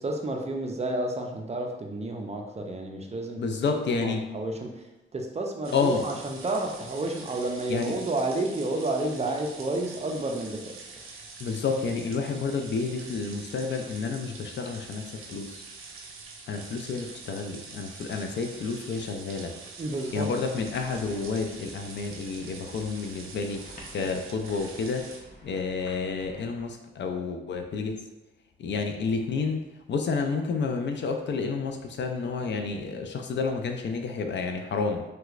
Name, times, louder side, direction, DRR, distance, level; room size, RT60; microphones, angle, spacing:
voice 1, 0.0-4.7 5.1-10.7 19.8-20.3, right 2 dB, 30° right, 2 dB, 0.5 m, -31 dB
voice 2, 3.4-4.2 5.7-6.1 7.7-7.9 11.4-15.6 16.5-19.5 20.1-25.1 25.4-28.0 28.6-29.6 29.9-35.0, left 4 dB, 60° left, 4 dB, 0.4 m, -30 dB
sound 1, 5.6-25.2, right 4 dB, 90° right, 0.5 m, -45 dB
sound 2, 19.8-26.7, left 1 dB, 45° left, 0.8 m, -50 dB
3.3 x 3.0 x 2.4 m, 0.99 s
cardioid pair, 85°, 21 cm